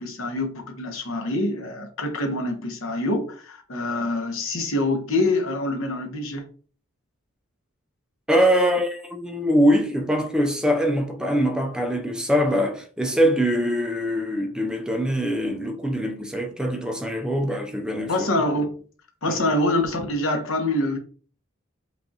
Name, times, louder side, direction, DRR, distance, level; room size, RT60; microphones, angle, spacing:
voice 1, 0.0-6.5 18.1-18.7 19.2-21.0, left 2 dB, 70° left, 1.0 m, -25 dB
voice 2, 8.3-18.3 19.3-19.6, equal, 5° right, 0.4 m, -23 dB
5.3 x 2.4 x 2.7 m
head